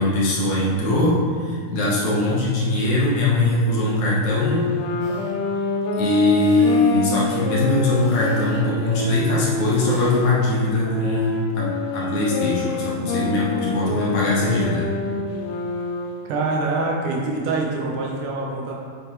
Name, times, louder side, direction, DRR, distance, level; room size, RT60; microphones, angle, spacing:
voice 1, 0.0-4.7 5.9-14.8, left 2 dB, 65° left, -6 dB, 2.5 m, -21 dB
Wind instrument woodwind instrument, 4.3-10.1 10.8-16.2, left 3 dB, 85° left, 2.6 m, -27 dB
sound 1, 5.0-5.4 6.2-7.0 7.9-8.7 9.5-10.4 11.2-11.3, left 1 dB, 35° left, 1.6 m, -43 dB
voice 2, 16.2-18.7, right 3 dB, 75° right, -2 dB, 2.5 m, -25 dB
8.0 x 6.8 x 3.2 m, 2.1 s
omnidirectional pair, 3.8 m